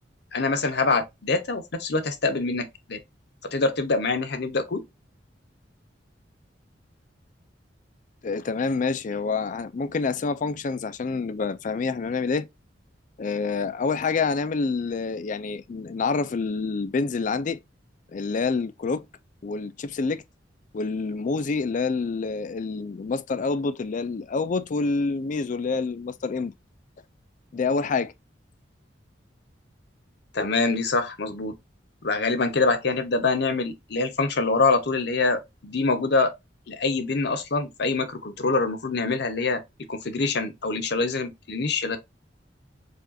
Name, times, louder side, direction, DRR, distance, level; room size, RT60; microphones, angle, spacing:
voice 1, 0.3-3.0 3.5-4.8 30.3-31.5 32.0-36.3 36.7-39.6 39.9-42.0, left 3 dB, 60° left, 0.8 m, -25 dB
voice 2, 8.2-12.5 13.2-17.6 18.1-19.1 19.4-20.2 20.7-26.5 27.5-28.1, left 4 dB, 45° left, 0.4 m, -27 dB
5.0 x 2.4 x 2.6 m
head